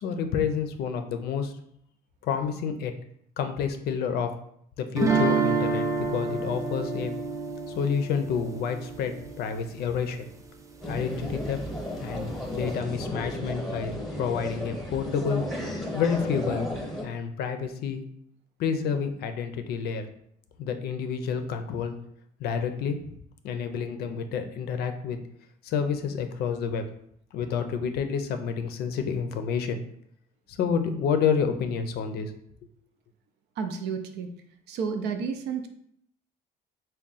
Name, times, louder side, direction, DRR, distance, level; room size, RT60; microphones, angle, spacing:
voice 1, 0.0-1.5 2.2-2.9 3.4-4.3 4.8-7.1 7.7-10.3 10.9-11.6 12.0-15.4 15.9-16.7 17.0-18.0 18.6-20.1 20.6-21.9 22.4-23.2 23.4-25.2 25.6-26.8 27.3-29.8 30.5-32.3, left 6 dB, 70° left, 8 dB, 0.5 m, -29 dB
sound 1, 5.0-9.9, right 4 dB, 20° right, 0.4 m, -28 dB
sound 2, 10.8-17.0, equal, ahead, 0.9 m, -34 dB
voice 2, 33.6-34.3 34.7-35.7, right 6 dB, 80° right, 7 dB, 0.5 m, -31 dB
3.6 x 2.2 x 4.0 m, 0.70 s
cardioid pair, 110°, 17 cm